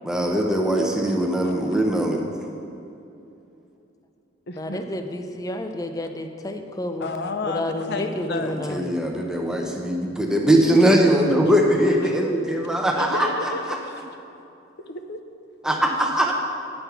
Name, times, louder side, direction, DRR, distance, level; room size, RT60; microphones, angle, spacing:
voice 1, 0.0-2.2 8.4-13.3 13.7-13.8 15.6-16.3, right 1 dB, 5° right, 1 dB, 0.8 m, -21 dB
voice 2, 1.4-1.8 4.5-4.8 7.0-8.8 13.0-14.0 14.9-15.2, left 3 dB, 60° left, 7 dB, 0.7 m, -32 dB
voice 3, 4.6-7.1 7.4-8.9, left 1 dB, 20° left, 6 dB, 0.5 m, -30 dB
10.0 x 5.3 x 5.9 m, 2.7 s
head